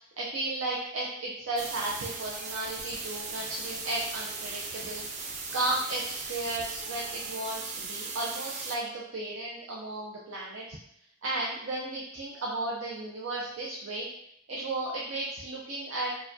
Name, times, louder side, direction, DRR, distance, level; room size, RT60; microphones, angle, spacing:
voice 1, 0.2-10.8 11.2-14.1 14.5-16.1, right 2 dB, 90° right, -4 dB, 0.6 m, -34 dB
sound 1, 1.6-8.8, right 4 dB, 40° right, 0.5 m, -38 dB
4.6 x 2.2 x 2.6 m, 0.73 s
head